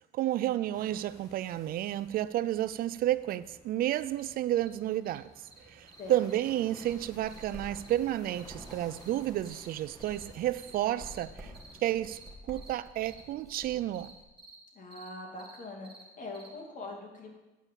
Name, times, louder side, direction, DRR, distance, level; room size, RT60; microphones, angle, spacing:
voice 1, 0.1-5.3 5.7-11.5 11.8-12.2 12.5-14.1, right 13 dB, 60° right, 0.4 m, -31 dB
sound 1, 0.7-12.3, left 1 dB, 20° left, 1.6 m, -56 dB
sound 2, 4.2-4.3 4.6-4.7 5.0-5.2 5.5-5.6 5.9-6.0 6.3-6.4 6.8-6.9 7.3-7.4 7.7-7.9 8.2-9.1 9.4-9.6 10.0-10.2 10.6-10.8 11.1-11.2 11.5-11.7 12.1-12.3 12.6-12.7 13.0-13.2 13.5-13.7 13.9-14.1 14.4-14.6 14.9-15.1 15.4-15.6 15.8-16.0 16.3-16.5, right 3 dB, 30° right, 2.1 m, -53 dB
sound 3, 6.8-14.2, equal, ahead, 2.0 m, -51 dB
voice 2, 14.7-15.9 16.2-17.3, left 2 dB, 50° left, 2.4 m, -42 dB
8.4 x 5.4 x 7.4 m
cardioid pair, 110°, 17 cm